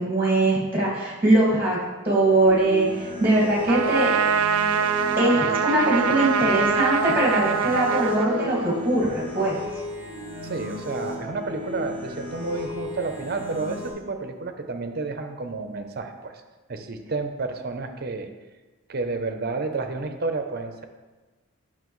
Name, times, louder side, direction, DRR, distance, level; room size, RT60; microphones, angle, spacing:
voice 1, 0.0-1.8 2.1-4.1 5.2-9.5, right 1 dB, 10° right, -5 dB, 1.9 m, -21 dB
sound 1, 2.4-13.9, left 1 dB, 25° left, 1.9 m, -35 dB
Trumpet, 3.7-8.9, right 7 dB, 85° right, 0.4 m, -24 dB
voice 2, 10.4-16.4 16.7-18.3 18.9-20.8, right 3 dB, 45° right, 6 dB, 0.6 m, -30 dB
9.0 x 5.9 x 3.1 m, 1.2 s
head